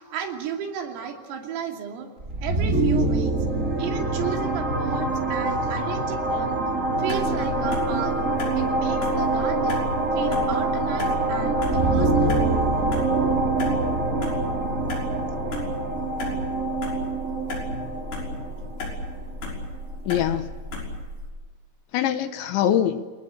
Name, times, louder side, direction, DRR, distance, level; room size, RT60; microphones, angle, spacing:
voice 1, 0.0-2.1 2.4-3.3 3.8-6.6 7.0-8.2 8.6-9.9 10.1-12.4, right 8 dB, 85° right, 2 dB, 5.4 m, -34 dB
sound 1, 2.2-19.9, right 2 dB, 25° right, 1.6 m, -25 dB
sound 2, 7.1-21.3, left 1 dB, 50° left, 7.6 m, -34 dB
voice 2, 17.6-18.0 18.4-18.8 20.0-20.5 21.9-23.0, left 10 dB, 75° left, 9 dB, 3.3 m, -25 dB
27.5 x 20.0 x 8.4 m, 1.5 s
omnidirectional pair, 5.8 m